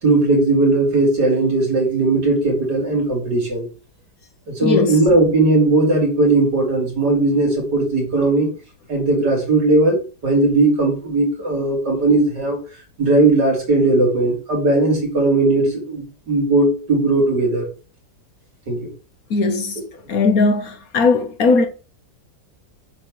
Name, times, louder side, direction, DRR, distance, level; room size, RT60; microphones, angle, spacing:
voice 1, 0.0-3.7 4.5-8.5 8.9-12.6 13.0-17.7 18.7-18.8, right 2 dB, 65° right, 3.7 m, -17 dB
voice 2, 4.6-5.0 19.3-19.8 20.1-21.7, left 3 dB, 60° left, 1.2 m, -18 dB
8.3 x 3.6 x 6.2 m
omnidirectional pair, 1.9 m